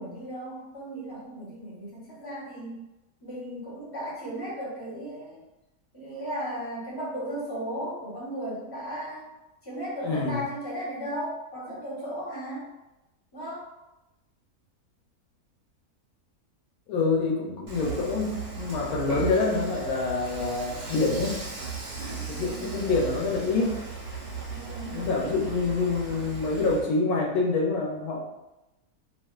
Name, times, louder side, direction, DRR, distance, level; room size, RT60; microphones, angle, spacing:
voice 1, 0.0-2.7 3.2-5.4 5.9-9.3 9.6-12.7 13.3-13.7 22.3-22.8 24.5-25.1, equal, 20° left, -8 dB, 0.7 m, -36 dB
voice 2, 10.0-10.4 16.9-21.4 22.3-23.8 24.9-28.3, left 3 dB, 80° left, -1 dB, 1.1 m, -26 dB
Dishes pots and pans / Frying (food), 17.7-26.9, right 5 dB, 90° right, 1.1 m, -37 dB
2.4 x 2.4 x 2.3 m, 0.97 s
omnidirectional pair, 1.6 m